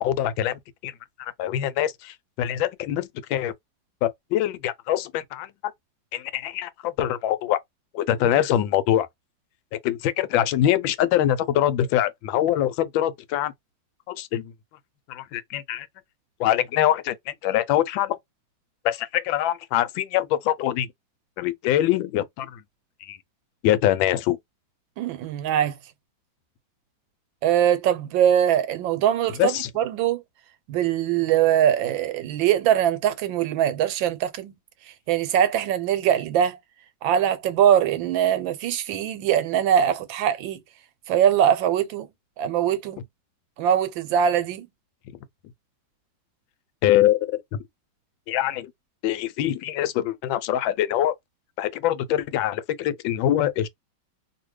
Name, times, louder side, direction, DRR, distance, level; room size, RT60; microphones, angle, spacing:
voice 1, 0.0-0.9 1.2-3.5 4.0-5.5 6.1-7.6 7.9-9.1 9.8-13.5 14.2-14.5 15.1-15.9 16.4-18.2 18.8-20.9 21.4-22.6 23.0-23.2 23.6-24.4 29.4-29.7 46.8-47.6 48.3-48.7 49.0-51.1 51.6-53.7, left 12 dB, 85° left, 1.3 m, -24 dB
voice 2, 25.0-25.7 27.4-30.2 30.7-34.5 35.1-36.6 37.0-40.6 41.1-42.1 42.4-43.0 43.6-44.7, right 10 dB, 85° right, 1.4 m, -22 dB
2.8 x 2.7 x 3.0 m
omnidirectional pair, 2.1 m